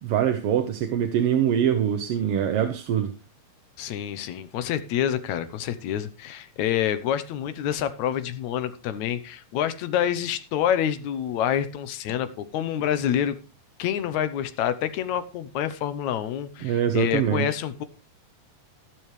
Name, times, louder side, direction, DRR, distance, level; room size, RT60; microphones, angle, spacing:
voice 1, 0.0-3.1 16.6-17.5, right 9 dB, 70° right, 6 dB, 1.5 m, -23 dB
voice 2, 3.8-13.4 13.8-17.8, left 10 dB, 75° left, 12 dB, 2.2 m, -27 dB
13.0 x 12.0 x 3.2 m, 0.30 s
omnidirectional pair, 3.4 m